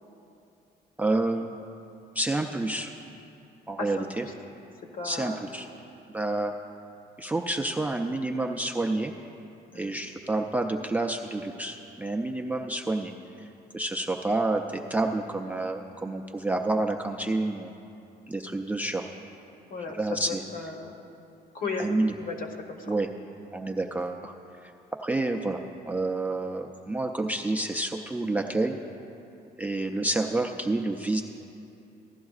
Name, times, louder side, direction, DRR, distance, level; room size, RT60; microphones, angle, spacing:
voice 1, 1.0-1.5 2.2-2.9 3.7-4.2 5.0-5.7 6.1-6.5 7.2-9.1 9.7-13.1 13.4-13.5 13.7-17.7 18.3-19.1 19.9-20.4 21.8-22.1 22.9-23.1 23.5-24.3 24.6-24.7 25.0-25.6 25.8-28.8 29.6-31.2, right 2 dB, 10° right, 3 dB, 0.3 m, -29 dB
voice 2, 3.8-4.3 4.9-5.5 9.7-9.9 19.7-20.0 20.2-20.9 21.5-21.9 22.2-22.9, left 4 dB, 55° left, 3 dB, 1.1 m, -35 dB
15.5 x 11.5 x 2.4 m, 2.7 s
cardioid pair, 145°, 17 cm